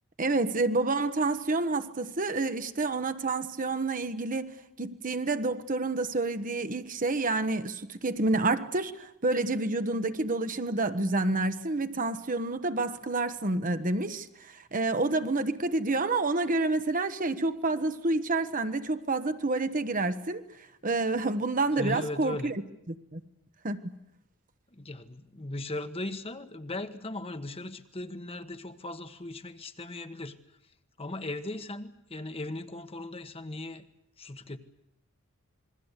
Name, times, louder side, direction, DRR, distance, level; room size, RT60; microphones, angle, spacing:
voice 1, 0.2-20.4 20.8-22.6 22.9-23.2 23.6-23.8, right 2 dB, 35° right, 1.2 m, -29 dB
voice 2, 21.8-22.5 24.8-30.4 31.0-33.9 34.2-34.6, left 2 dB, 25° left, 1.3 m, -38 dB
27.5 x 21.5 x 8.2 m
head